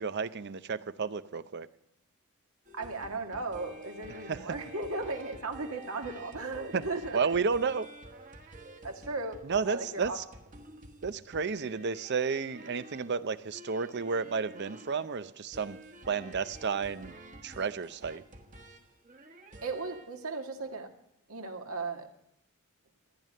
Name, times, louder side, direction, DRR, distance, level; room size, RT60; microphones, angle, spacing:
voice 1, 0.0-1.7 4.3-4.4 6.7-6.8 7.1-7.9 9.4-10.2 11.0-15.8 16.1-17.1 17.4-18.2, right 5 dB, 50° right, 14 dB, 0.6 m, -32 dB
sound 1, 2.6-20.2 20.6-20.8, right 1 dB, 35° right, 1.3 m, -50 dB
voice 2, 2.7-7.2 8.8-10.2 19.6-20.9 21.3-22.1, right 3 dB, 75° right, 3 dB, 1.9 m, -36 dB
14.0 x 10.5 x 6.6 m, 0.78 s
head